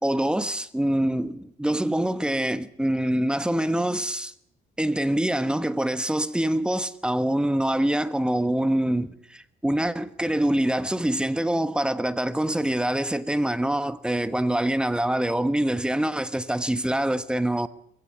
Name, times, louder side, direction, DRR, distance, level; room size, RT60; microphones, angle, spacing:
voice 1, 0.0-4.3 4.8-17.7, right 1 dB, 5° right, 1.2 m, -25 dB
22.5 x 16.5 x 9.6 m
cardioid pair, 110°, 17 cm